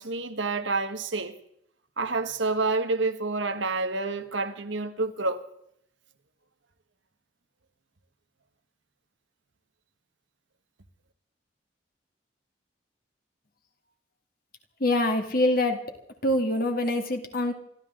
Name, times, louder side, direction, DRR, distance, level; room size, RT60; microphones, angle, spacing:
voice 1, 0.0-1.3 2.0-5.4, right 3 dB, 80° right, 1.5 m, -28 dB
voice 2, 14.8-15.8 16.2-17.5, left 1 dB, 50° left, 2.5 m, -24 dB
28.5 x 13.0 x 3.8 m
head